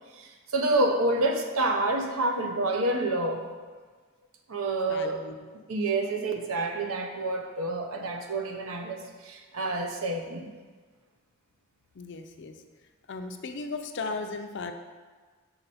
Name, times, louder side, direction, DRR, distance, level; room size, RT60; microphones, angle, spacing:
voice 1, 0.2-3.5 4.5-5.2 5.7-10.5, right 2 dB, 70° right, 4 dB, 0.7 m, -28 dB
voice 2, 4.9-5.5 11.9-12.6 13.1-14.7, left 3 dB, 55° left, 6 dB, 0.5 m, -36 dB
6.7 x 4.3 x 4.2 m, 1.4 s
head